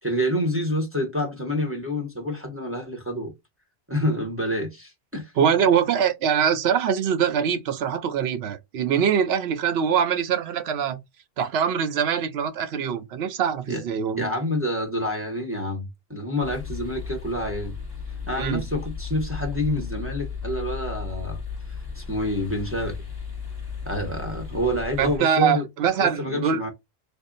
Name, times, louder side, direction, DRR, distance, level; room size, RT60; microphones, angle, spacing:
voice 1, 0.0-3.3 3.9-5.3 13.7-13.8 14.2-17.7 18.3-21.4 22.0-23.0 23.9-25.7 26.0-26.7, left 1 dB, 15° right, 0.8 m, -27 dB
voice 2, 5.4-11.0 11.4-14.3 18.4-18.7 25.0-26.6, right 8 dB, 80° right, 0.9 m, -23 dB
sound 1, 16.4-25.2, left 5 dB, 25° left, 1.0 m, -35 dB
3.5 x 2.0 x 3.8 m
omnidirectional pair, 1.0 m